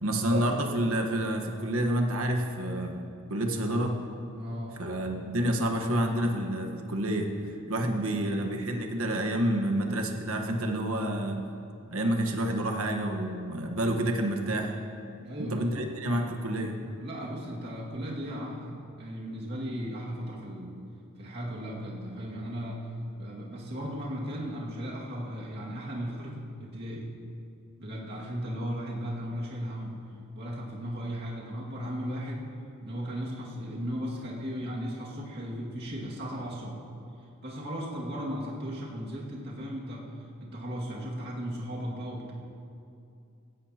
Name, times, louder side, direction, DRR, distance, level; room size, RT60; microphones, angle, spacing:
voice 1, 0.0-3.0 3.3-4.1 4.8-7.3 7.7-11.5 11.9-14.7 15.4-16.8, right 1 dB, 80° right, 3 dB, 1.3 m, -28 dB
voice 2, 4.3-4.8 7.8-8.3 15.2-15.9 17.0-20.7 21.2-22.9 23.2-27.1 27.8-30.0 30.4-32.5 32.8-36.8 37.4-40.1 40.4-42.3, equal, 50° right, -4 dB, 2.1 m, -36 dB
16.5 x 16.0 x 2.9 m, 2.6 s
head